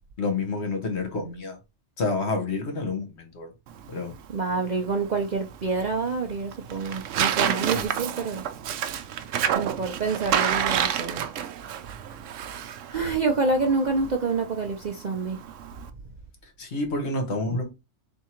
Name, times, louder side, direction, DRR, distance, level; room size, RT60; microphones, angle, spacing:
voice 1, 0.2-1.6 2.0-3.5 3.9-4.1 7.7-7.9 16.6-17.7, left 3 dB, 60° left, 1.4 m, -29 dB
Tearing, 3.7-15.9, right 9 dB, 80° right, 0.9 m, -30 dB
voice 2, 4.3-8.4 9.5-11.3 12.9-15.4, right 4 dB, 50° right, 0.5 m, -27 dB
3.6 x 2.8 x 4.3 m
omnidirectional pair, 1.3 m